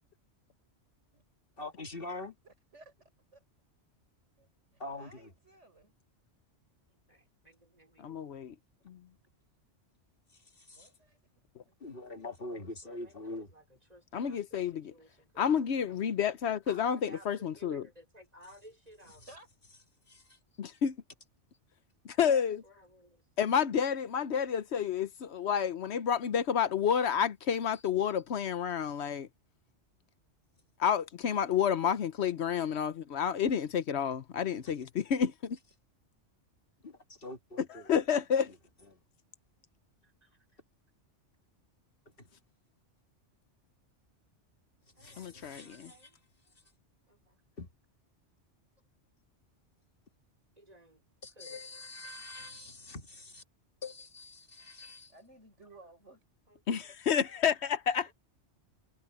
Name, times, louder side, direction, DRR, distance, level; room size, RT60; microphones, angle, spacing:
voice 1, 1.6-2.3 4.8-5.3 10.6-10.9 11.8-13.5 20.1-20.4 27.7-27.8 36.8-37.9 38.4-38.6 38.9-39.0 42.2-42.3 45.0-46.0 47.6-47.7 51.2-53.4 53.8-55.1, left 2 dB, 50° left, 2.2 m, -44 dB
voice 2, 2.4-2.9 3.3-3.4 4.4-5.9 10.7-11.2 11.7-11.8 12.5-12.7 19.3-19.5 55.1-56.2 56.7-56.8, right 2 dB, 85° right, 6.5 m, -57 dB
voice 3, 6.9-8.3 12.6-16.0 16.6-19.2 22.6-23.3 40.0-40.6 45.0-46.2 46.4-46.5 47.1-47.5 50.6-51.0 51.3-51.6 56.5-56.6 58.0-58.1, equal, 35° right, 4.7 m, -58 dB
voice 4, 8.0-8.5 8.9-9.0 14.1-14.9 15.4-17.8 20.6-21.0 22.0-22.6 23.4-29.3 30.8-35.3 37.9-38.5 45.2-45.9 56.7-58.1, left 8 dB, 70° left, 1.0 m, -30 dB
omnidirectional pair, 1.2 m